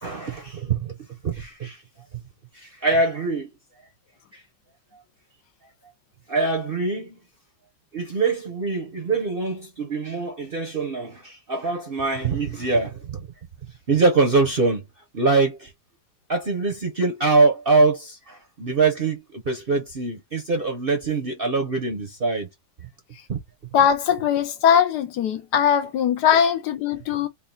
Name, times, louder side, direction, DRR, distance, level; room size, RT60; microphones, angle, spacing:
voice 1, 0.0-1.8 2.1-2.2 2.5-3.5 4.3-4.4 6.3-7.2 7.9-13.3 13.6-14.9 15.1-15.7 16.3-22.5 22.8-22.9 23.3-23.4 26.3-26.4, right 3 dB, 45° right, 0.7 m, -24 dB
voice 2, 23.7-27.3, left 8 dB, 70° left, 1.2 m, -20 dB
3.7 x 2.4 x 3.8 m
omnidirectional pair, 1.9 m